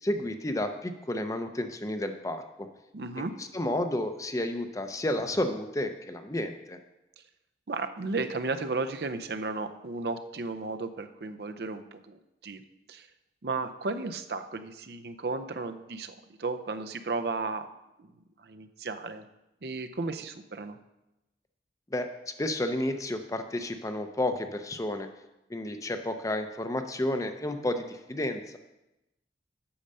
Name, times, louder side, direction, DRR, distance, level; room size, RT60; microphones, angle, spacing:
voice 1, 0.0-2.7 3.2-6.8 21.9-25.1 25.5-28.6, left 1 dB, 20° left, 7 dB, 0.6 m, -31 dB
voice 2, 2.9-3.3 7.7-12.6 12.9-13.1 13.4-17.7 18.0-18.1 18.4-19.2 19.6-20.8, right 3 dB, 60° right, 8 dB, 0.6 m, -34 dB
8.6 x 6.5 x 5.4 m, 0.94 s
head